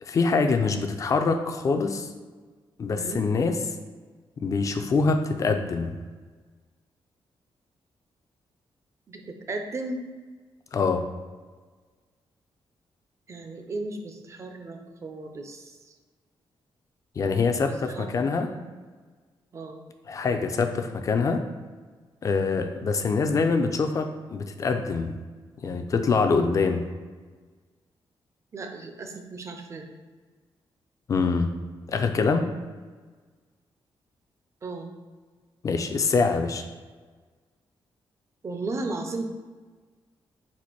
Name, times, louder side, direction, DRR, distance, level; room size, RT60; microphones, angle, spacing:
voice 1, 0.0-2.1 2.8-3.5 4.4-5.9 10.7-11.0 17.2-18.5 20.1-21.4 22.2-25.2 25.6-26.8 31.1-31.5 31.9-32.5 35.6-36.6, left 4 dB, 35° left, 7 dB, 0.3 m, -24 dB
voice 2, 2.9-3.3 9.1-10.0 13.3-15.9 17.5-17.6 17.9-18.6 19.5-19.8 28.5-29.9 34.6-34.9 38.4-39.3, right 2 dB, 30° right, 5 dB, 0.4 m, -35 dB
4.2 x 2.5 x 4.4 m, 1.4 s
wide cardioid pair, 170°, 9 cm